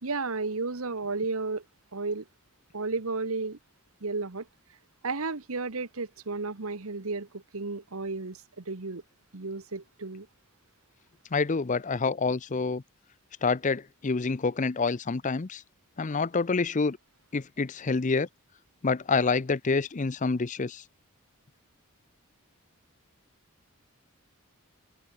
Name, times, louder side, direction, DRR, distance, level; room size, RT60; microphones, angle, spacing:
voice 1, 0.0-1.6 1.9-2.2 2.7-3.6 4.0-4.5 5.0-9.0 9.3-10.3, right 3 dB, 70° right, 1.3 m, -33 dB
voice 2, 11.3-12.8 13.4-15.6 16.0-17.0 17.3-18.3 18.8-20.8, left 4 dB, 35° left, 0.6 m, -27 dB
head